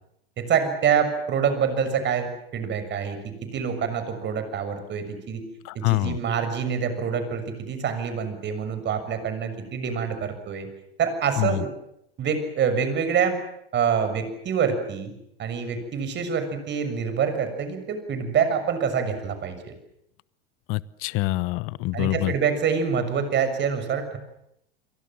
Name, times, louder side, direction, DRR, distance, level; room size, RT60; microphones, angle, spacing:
voice 1, 0.4-5.4 5.7-10.7 11.0-11.7 12.2-13.4 13.7-15.1 15.4-19.7 21.9-24.2, right 7 dB, 40° right, 10 dB, 6.7 m, -26 dB
voice 2, 5.6-6.2 11.4-11.6 20.7-22.3, left 20 dB, 50° left, 19 dB, 1.0 m, -25 dB
29.5 x 23.0 x 7.5 m, 0.76 s
hypercardioid pair, 90°, 29 cm